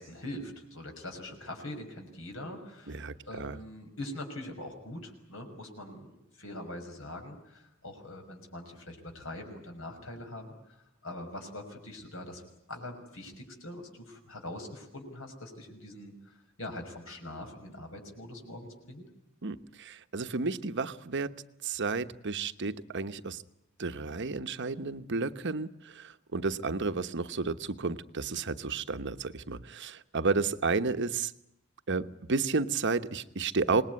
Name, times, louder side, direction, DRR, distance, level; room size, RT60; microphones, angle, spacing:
voice 1, 0.0-12.4 12.7-19.0, left 1 dB, 65° left, 3 dB, 6.1 m, -43 dB
voice 2, 2.9-3.6 19.4-21.3 21.6-23.4 23.8-31.3 31.9-33.8, right 4 dB, 55° right, 10 dB, 1.1 m, -32 dB
26.0 x 20.5 x 9.7 m, 0.82 s
head